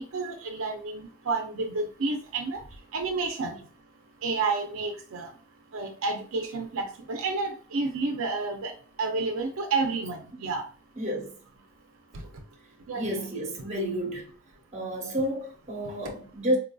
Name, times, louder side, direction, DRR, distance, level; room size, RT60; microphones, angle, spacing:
voice 1, 0.0-2.6 2.9-3.6 4.2-5.3 5.7-8.7 9.0-10.6 12.1-12.2 12.9-13.2, right 3 dB, 80° right, 0.5 m, -30 dB
voice 2, 11.0-11.3 12.9-14.3 14.7-16.6, equal, 35° right, 1.0 m, -30 dB
4.2 x 2.6 x 2.3 m
head